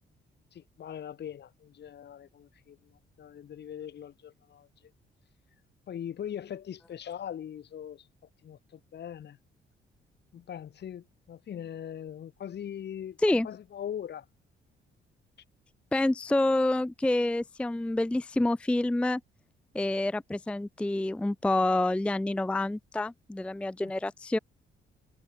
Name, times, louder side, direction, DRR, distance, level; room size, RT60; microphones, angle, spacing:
voice 1, 0.5-4.9 5.9-8.1 8.4-9.4 10.3-13.2 13.4-14.3 23.8-23.9, left 9 dB, 60° left, 2.1 m, -41 dB
voice 2, 15.9-19.2 19.7-24.4, left 2 dB, 5° left, 0.4 m, -27 dB
cardioid pair, 90°, 20 cm